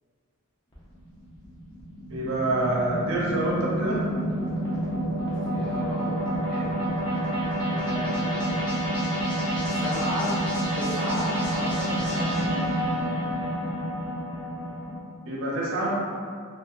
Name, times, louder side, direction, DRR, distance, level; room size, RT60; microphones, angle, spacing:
sound 1, 0.7-15.0, right 1 dB, 20° left, 0.6 m, -28 dB
voice 1, 2.1-4.0 15.2-15.9, right 1 dB, 65° right, -5 dB, 0.6 m, -26 dB
voice 2, 5.2-6.1 6.5-6.7 7.6-8.8 9.7-10.4 10.7-12.5, left 1 dB, 15° right, -12 dB, 0.6 m, -35 dB
2.7 x 2.3 x 2.4 m, 2.1 s
head